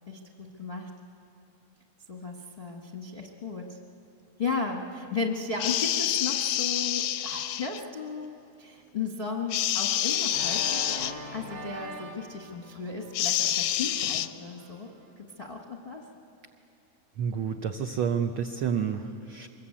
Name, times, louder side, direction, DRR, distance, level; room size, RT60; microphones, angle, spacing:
voice 1, 0.1-0.9 2.1-3.8 4.4-8.3 8.6-14.9 15.4-16.0, left 4 dB, 35° left, 1 dB, 0.8 m, -35 dB
sound 1, 5.6-7.8 9.5-11.1 13.1-14.3, left 12 dB, 80° left, 1.4 m, -27 dB
Organ, 10.3-15.1, right 2 dB, 60° right, 4.7 m, -43 dB
voice 2, 17.2-19.5, right 7 dB, 80° right, 5 dB, 1.1 m, -29 dB
24.0 x 22.0 x 8.5 m, 2.6 s
omnidirectional pair, 3.5 m